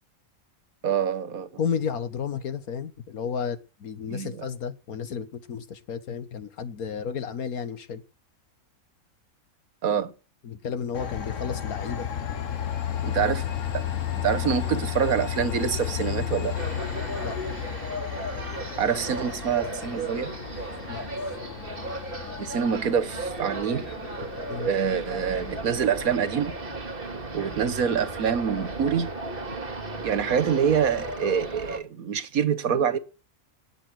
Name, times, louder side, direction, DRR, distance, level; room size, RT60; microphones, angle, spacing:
voice 1, 0.8-1.5 4.1-4.5 9.8-10.1 13.1-13.4 13.7-13.8 14.2-16.6 18.8-20.3 22.4-23.9 24.6-26.6 27.3-29.1 30.0-33.0, right 7 dB, 75° right, 1.6 m, -26 dB
voice 2, 1.6-8.0 10.4-12.1 17.2-17.4 20.9-21.1 24.5-24.7, left 6 dB, 80° left, 1.7 m, -32 dB
Train, 10.9-26.1, left 9 dB, 60° left, 1.5 m, -33 dB
sound 1, 16.5-31.8, right 2 dB, 40° right, 2.4 m, -35 dB
18.5 x 7.5 x 6.1 m
omnidirectional pair, 1.5 m